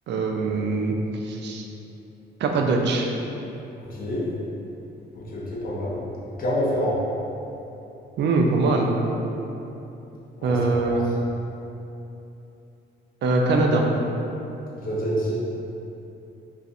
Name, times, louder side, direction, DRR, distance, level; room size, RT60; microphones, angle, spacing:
voice 1, 0.1-0.9 1.2-1.6 2.4-3.1 8.2-8.9 10.4-11.0 13.2-13.8, right 3 dB, 60° right, 1 dB, 0.4 m, -22 dB
voice 2, 3.8-4.3 5.1-6.0 6.4-7.0 10.4-11.0 14.8-15.4, equal, 45° left, -6 dB, 0.8 m, -27 dB
2.5 x 2.3 x 4.0 m, 2.9 s
cardioid pair, 90°, 20 cm